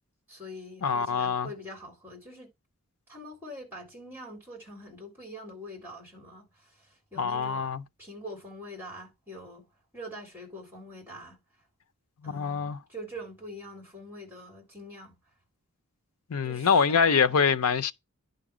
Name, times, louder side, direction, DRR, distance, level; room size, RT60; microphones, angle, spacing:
voice 1, 0.3-2.5 3.1-6.9 7.1-9.7 9.9-11.4 12.2-15.2 16.4-17.4, equal, 10° right, 3.5 m, -44 dB
voice 2, 0.8-1.5 7.2-7.8 12.2-12.8 16.3-17.9, left 6 dB, 80° left, 0.6 m, -25 dB
10.5 x 4.0 x 4.9 m
head